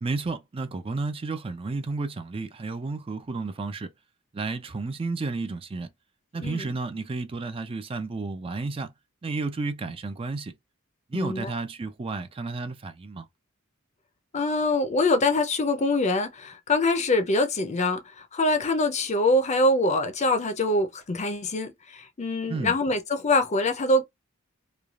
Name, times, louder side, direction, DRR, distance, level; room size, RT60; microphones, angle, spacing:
voice 1, 0.0-3.9 4.3-5.9 6.3-8.9 9.2-10.5 11.1-13.3 22.5-22.8, right 3 dB, 25° right, 0.4 m, -32 dB
voice 2, 11.1-11.5 14.3-24.1, left 2 dB, 35° left, 0.6 m, -24 dB
3.2 x 2.3 x 2.3 m
head